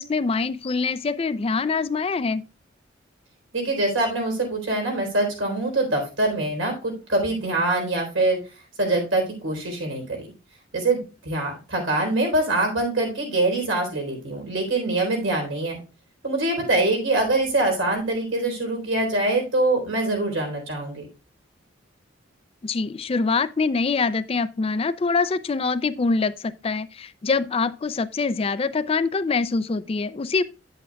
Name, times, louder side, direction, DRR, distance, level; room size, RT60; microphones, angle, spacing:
voice 1, 0.0-2.4 22.6-30.4, left 4 dB, 30° left, 0.4 m, -24 dB
voice 2, 3.5-8.4 8.8-10.3 10.7-15.8 16.2-21.0, right 2 dB, 85° right, 3.8 m, -24 dB
9.3 x 8.4 x 2.3 m
head